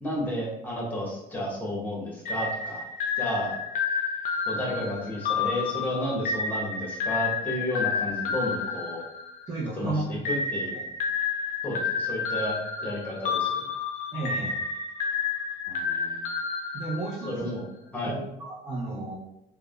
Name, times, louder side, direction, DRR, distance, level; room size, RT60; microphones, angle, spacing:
voice 1, 0.0-2.8 3.2-3.5 4.5-9.0 9.8-10.7 11.6-13.7 15.7-16.3 17.2-17.6 17.9-18.1, left 1 dB, 10° left, -4 dB, 1.0 m, -32 dB
sound 1, 2.3-9.7 10.3-17.5, left 5 dB, 50° left, 0.4 m, -30 dB
voice 2, 9.5-10.2 10.7-10.8 14.1-14.6 16.7-17.5 18.0-19.2, right 2 dB, 20° right, -7 dB, 0.7 m, -33 dB
3.3 x 2.1 x 2.3 m, 0.86 s
cardioid pair, 115°, 17 cm